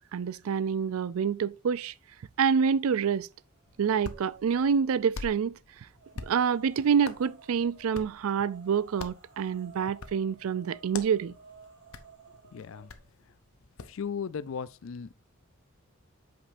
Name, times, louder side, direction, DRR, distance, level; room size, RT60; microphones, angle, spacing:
voice 1, 0.1-1.9 2.4-3.3 3.8-5.6 6.2-11.3, right 7 dB, 80° right, 0.4 m, -27 dB
sound 1, 2.4-3.0 3.3-5.2 5.9-13.1, right 4 dB, 50° right, 1.5 m, -56 dB
Hands, 3.7-14.0, left 4 dB, 80° left, 0.8 m, -46 dB
voice 2, 12.5-12.9 13.8-15.1, left 6 dB, 65° left, 0.4 m, -36 dB
8.5 x 5.2 x 2.6 m
head